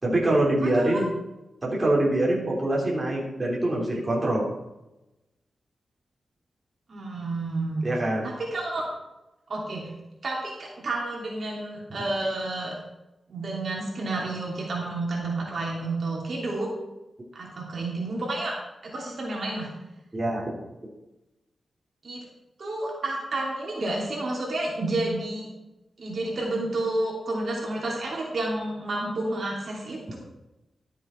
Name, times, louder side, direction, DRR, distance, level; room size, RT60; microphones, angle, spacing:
voice 1, 0.0-1.1 1.6-4.5 7.8-8.2 20.1-20.6, right 1 dB, 25° right, -4 dB, 3.3 m, -24 dB
voice 2, 0.6-1.0 6.9-7.9 8.2-8.8 9.5-9.9 10.2-12.7 13.3-16.7 17.3-18.6 18.8-19.7 22.0-22.2 22.6-25.5 26.0-30.2, right 2 dB, 60° right, -3 dB, 3.0 m, -30 dB
12.5 x 7.4 x 4.5 m, 0.98 s
cardioid pair, 80°, 0 cm